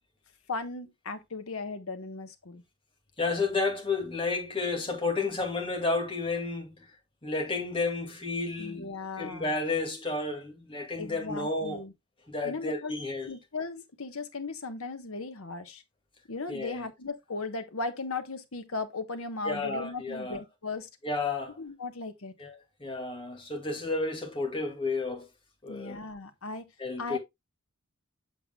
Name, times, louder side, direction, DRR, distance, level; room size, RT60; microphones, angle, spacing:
voice 1, 0.5-2.6 8.6-9.6 11.0-11.9 12.4-12.9 13.3-15.8 16.3-20.9 21.6-22.4 25.7-26.7 27.0-27.2, left 3 dB, 75° left, 1.2 m, -37 dB
voice 2, 3.2-6.9 7.2-11.8 12.3-13.3 16.5-16.9 19.4-20.4 21.0-21.6 22.4-22.5 22.8-25.3 25.6-26.0 26.8-27.2, left 3 dB, 25° left, 2.3 m, -31 dB
7.9 x 6.9 x 2.3 m
head